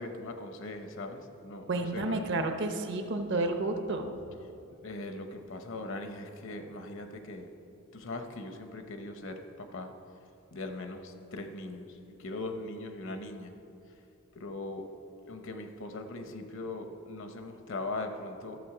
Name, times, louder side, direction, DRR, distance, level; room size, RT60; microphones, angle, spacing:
voice 1, 0.0-2.3 4.8-7.5 7.9-9.9 10.5-13.5 14.3-14.9 15.3-18.6, left 2 dB, 60° left, 6 dB, 0.8 m, -40 dB
voice 2, 1.7-4.1, right 2 dB, 55° right, 6 dB, 0.8 m, -31 dB
12.5 x 6.9 x 4.9 m, 2.7 s
head